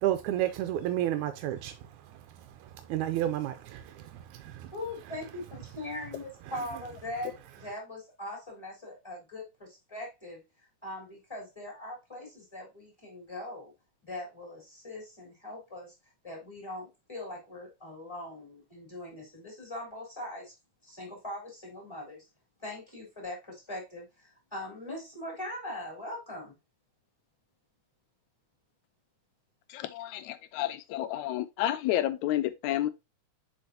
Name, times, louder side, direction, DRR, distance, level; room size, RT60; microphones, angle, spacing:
voice 1, 0.0-1.7 2.9-3.8 4.1-4.7, right 12 dB, 85° right, 2.0 m, -30 dB
voice 2, 4.7-13.7 14.0-15.9 16.2-20.5 20.8-22.2 22.6-26.5, left 1 dB, 10° left, 3.6 m, -41 dB
voice 3, 29.7-32.9, left 13 dB, 85° left, 2.0 m, -30 dB
7.0 x 4.9 x 2.8 m
omnidirectional pair, 3.4 m